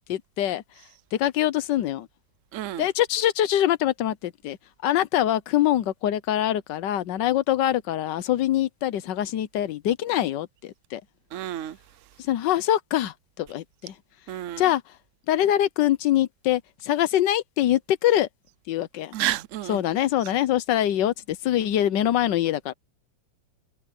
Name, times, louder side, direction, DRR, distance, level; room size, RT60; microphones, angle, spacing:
voice 1, 0.1-0.6 1.1-2.1 2.8-4.6 4.8-11.0 12.2-13.9 14.6-14.8 15.3-18.3 18.7-19.1 19.7-22.7, left 12 dB, 70° left, 1.4 m, -24 dB
voice 2, 2.5-2.8 11.3-11.7 14.3-14.6 19.1-19.8, right 13 dB, 60° right, 0.8 m, -30 dB
omnidirectional pair, 2.0 m